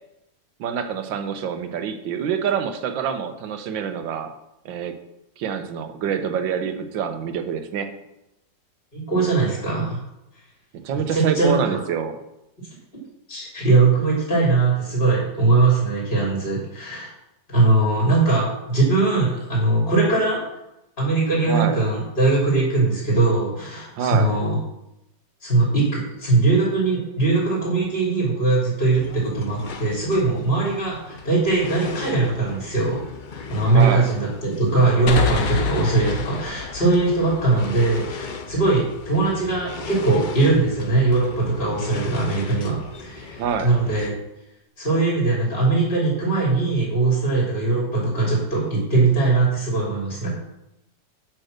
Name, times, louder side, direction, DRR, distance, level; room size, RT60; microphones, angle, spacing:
voice 1, 0.6-4.3 4.7-5.0 5.4-7.9 10.7-12.2 21.4-21.8 24.0-24.3 33.7-34.1 43.4-43.7, right 7 dB, 80° right, 8 dB, 1.7 m, -26 dB
voice 2, 8.9-10.0 11.1-11.8 13.3-17.1 17.5-20.4 21.0-24.6 25.4-33.0 33.3-44.1 44.8-50.3, right 3 dB, 30° left, -4 dB, 3.4 m, -20 dB
sound 1, 28.9-44.1, left 4 dB, 85° left, 0.4 m, -38 dB
sound 2, 35.1-38.5, left 7 dB, 55° left, 1.2 m, -27 dB
8.8 x 6.2 x 6.6 m, 0.87 s
omnidirectional pair, 2.0 m